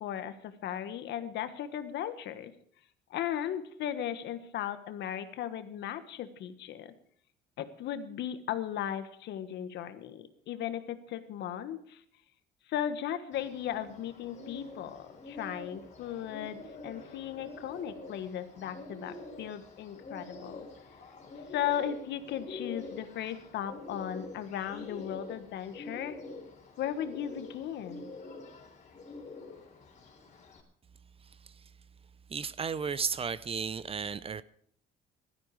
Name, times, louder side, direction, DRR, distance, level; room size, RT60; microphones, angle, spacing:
voice 1, 0.0-2.5 3.1-6.9 7.6-12.0 12.7-20.7 21.5-26.2 26.8-28.1, left 10 dB, 75° left, 1.5 m, -36 dB
Bird, 13.3-30.6, left 2 dB, 40° left, 3.8 m, -46 dB
voice 2, 31.2-31.6 32.3-34.4, right 6 dB, 30° right, 0.7 m, -34 dB
16.0 x 13.0 x 4.9 m
cardioid pair, 105°, 18 cm